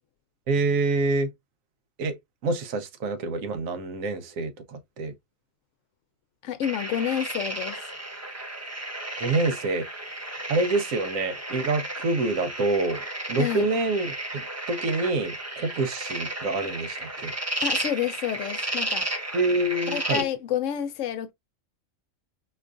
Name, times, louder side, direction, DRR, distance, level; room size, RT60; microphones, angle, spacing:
voice 1, 0.5-1.3 2.0-2.2 2.4-5.1 9.2-9.9 10.5-17.3 19.3-20.2, right 2 dB, 75° right, 1.1 m, -27 dB
voice 2, 6.4-7.9 13.4-13.7 17.6-19.1 19.9-21.3, left 10 dB, 70° left, 0.9 m, -29 dB
sound 1, 6.6-20.2, right 1 dB, 25° right, 0.3 m, -33 dB
4.4 x 2.4 x 2.4 m
omnidirectional pair, 1.4 m